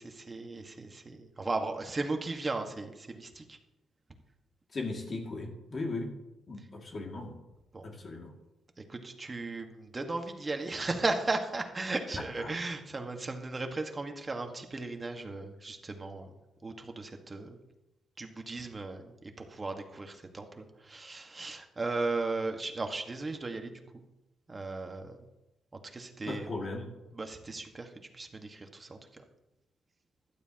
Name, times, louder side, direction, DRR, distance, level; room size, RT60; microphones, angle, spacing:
voice 1, 0.0-3.6 7.7-7.9 8.9-16.3 16.6-17.6 18.2-23.8 24.5-25.2 25.9-26.5 27.1-29.2, right 3 dB, 25° right, 4 dB, 1.5 m, -36 dB
voice 2, 4.7-6.1 6.5-7.4 7.8-8.3 12.4-12.5 26.2-26.9, left 2 dB, 40° left, 1 dB, 2.2 m, -37 dB
16.0 x 12.0 x 2.9 m, 0.99 s
cardioid pair, 110°, 0 cm